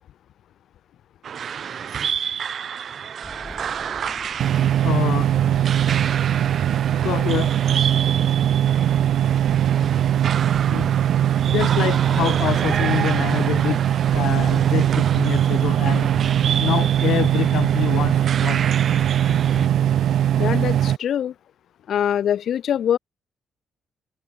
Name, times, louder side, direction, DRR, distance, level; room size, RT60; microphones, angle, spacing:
sound 1, 1.2-19.7, right 8 dB, 45° right, 0.4 m, -30 dB
sound 2, 3.2-20.2, left 1 dB, 5° left, 6.4 m, -42 dB
sound 3, 4.4-21.0, right 10 dB, 65° right, 0.8 m, -20 dB
voice 1, 4.8-5.3 7.0-7.6 10.7-10.9 11.5-13.8 14.1-16.1 16.6-18.6, left 11 dB, 70° left, 0.4 m, -26 dB
voice 2, 20.4-21.3 21.9-23.0, left 9 dB, 55° left, 1.1 m, -23 dB
cardioid pair, 160°, 0 cm